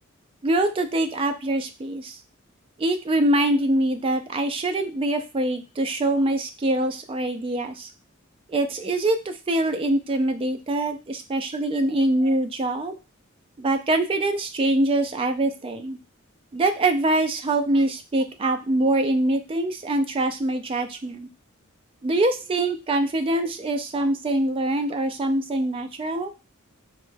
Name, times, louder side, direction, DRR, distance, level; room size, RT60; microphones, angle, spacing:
voice 1, 0.4-2.2 2.8-7.9 8.5-13.0 13.6-16.0 16.5-21.3 22.0-26.3, right 1 dB, 25° right, 7 dB, 0.3 m, -24 dB
3.1 x 2.2 x 3.2 m, 0.30 s
head